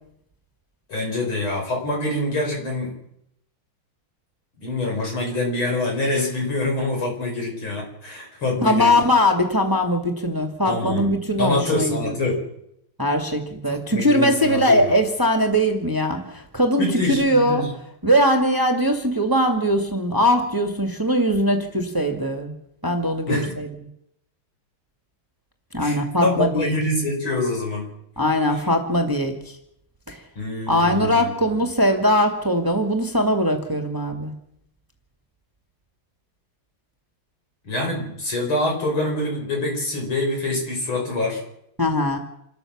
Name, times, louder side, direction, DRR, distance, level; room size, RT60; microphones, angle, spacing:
voice 1, 0.9-3.0 4.6-8.9 10.7-11.1 11.4-12.4 13.7-14.8 16.8-17.7 23.3-23.5 25.8-27.9 30.4-31.3 37.6-41.4, left 2 dB, 75° left, 1 dB, 6.1 m, -25 dB
voice 2, 8.6-12.1 13.0-17.7 18.0-22.6 22.8-23.7 25.7-26.7 28.2-29.5 30.1-30.2 30.7-34.3 41.8-42.2, equal, 10° right, 3 dB, 1.9 m, -21 dB
27.5 x 13.0 x 7.3 m, 0.77 s
omnidirectional pair, 2.3 m